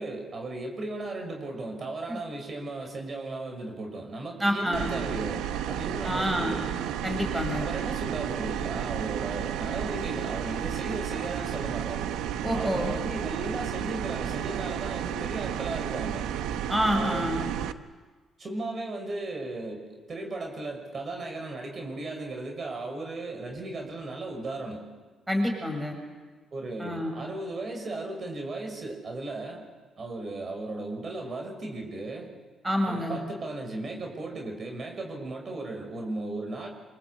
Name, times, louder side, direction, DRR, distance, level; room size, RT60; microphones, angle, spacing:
voice 1, 0.0-6.7 7.6-12.1 12.5-16.3 16.9-17.4 18.4-24.9 26.5-29.7 30.0-32.3 32.9-36.7, right 2 dB, 45° right, 2 dB, 6.1 m, -36 dB
voice 2, 4.4-4.9 6.0-6.5 7.0-7.7 12.4-12.9 16.7-17.4 25.3-26.0 26.8-27.1 32.6-33.2, equal, 10° right, 3 dB, 7.3 m, -27 dB
sound 1, 4.7-17.7, right 10 dB, 90° right, 1.0 m, -32 dB
26.5 x 24.5 x 8.5 m, 1.4 s
cardioid pair, 90°, 0 cm